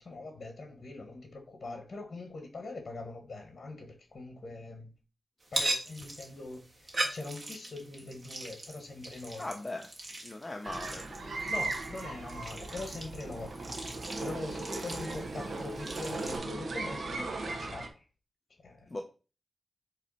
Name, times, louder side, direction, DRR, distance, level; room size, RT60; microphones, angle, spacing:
voice 1, 0.0-4.9 5.5-9.4 11.5-18.0 18.6-18.9, left 2 dB, 50° left, 1.4 m, -43 dB
sound 1, 5.4-16.4, right 2 dB, 35° right, 1.6 m, -40 dB
voice 2, 9.4-9.9 10.2-11.7 18.9-19.0, left 2 dB, 20° left, 0.6 m, -40 dB
sound 2, 10.6-17.9, right 3 dB, 60° right, 1.1 m, -38 dB
8.3 x 3.1 x 4.2 m
wide cardioid pair, 120°, 0 cm